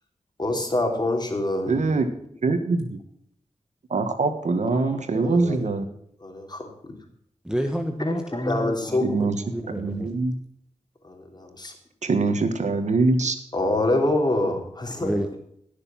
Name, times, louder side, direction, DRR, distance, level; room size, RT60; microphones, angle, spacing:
voice 1, 0.4-1.8 4.6-5.6 6.2-6.7 8.1-9.3 11.0-11.7 13.5-15.1, left 2 dB, 35° left, 3 dB, 3.3 m, -26 dB
voice 2, 1.7-2.1 2.4-2.9 3.9-5.9 9.0-9.4 9.7-10.3 12.0-13.4, right 3 dB, 75° right, 8 dB, 1.6 m, -23 dB
voice 3, 7.4-10.1 15.0-15.4, equal, 5° right, 5 dB, 1.3 m, -29 dB
16.5 x 6.8 x 7.3 m, 0.70 s
cardioid pair, 60°, 12 cm